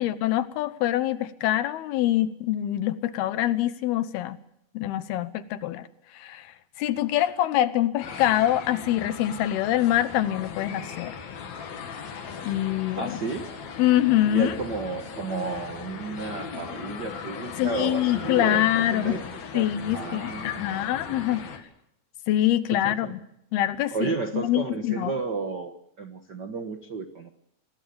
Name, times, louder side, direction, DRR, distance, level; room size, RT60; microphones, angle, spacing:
voice 1, 0.0-4.4 4.7-5.9 6.2-6.4 6.8-11.2 12.4-13.2 13.8-14.5 17.6-19.2 19.5-21.4 22.3-23.2 23.5-25.1, left 13 dB, 90° left, 13 dB, 3.0 m, -25 dB
sound 1, 8.0-21.6, left 6 dB, 75° left, 4.2 m, -38 dB
voice 2, 13.0-13.5 14.3-19.2 19.5-21.3 22.8-23.1 23.9-27.3, right 4 dB, 80° right, 7 dB, 0.9 m, -33 dB
26.0 x 20.0 x 6.9 m, 0.78 s
omnidirectional pair, 4.4 m